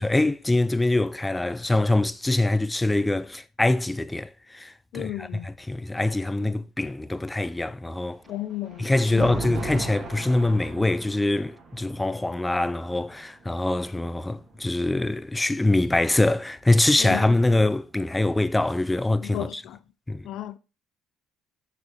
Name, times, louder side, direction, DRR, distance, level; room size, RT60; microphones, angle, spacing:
voice 1, 0.0-8.2 8.8-19.6 20.1-20.3, left 2 dB, 15° left, 0.5 m, -24 dB
voice 2, 4.9-5.5 6.4-6.6 8.3-9.3 17.0-17.3 19.2-19.8 20.2-20.6, left 14 dB, 70° left, 0.5 m, -34 dB
Thunder, 7.9-15.1 16.2-17.9, right 2 dB, 45° right, 2.8 m, -40 dB
6.6 x 6.5 x 3.6 m
supercardioid pair, 75°, 0 cm